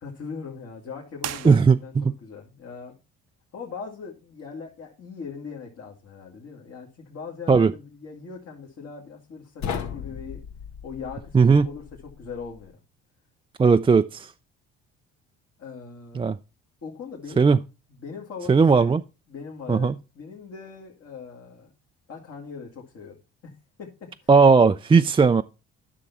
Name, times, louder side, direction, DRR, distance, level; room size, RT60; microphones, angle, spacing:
voice 1, 0.0-3.0 3.5-10.5 10.8-11.4 11.6-12.8 15.6-16.3 16.8-17.5 18.0-18.9 19.3-21.7 22.1-23.2 23.4-23.5 23.8-23.9 24.2-24.3, left 5 dB, 55° left, 2.3 m, -40 dB
sound 1, 1.2-2.2, right 11 dB, 60° right, 0.7 m, -37 dB
voice 2, 1.4-2.1 7.5-7.7 11.3-11.7 13.6-14.3 16.1-16.4 17.4-17.6 18.5-19.0 19.7-19.9 24.3-25.4, right 5 dB, 20° right, 0.4 m, -17 dB
sound 2, 9.6-12.7, left 7 dB, 70° left, 1.1 m, -36 dB
10.0 x 5.9 x 4.1 m
supercardioid pair, 65°, 30 cm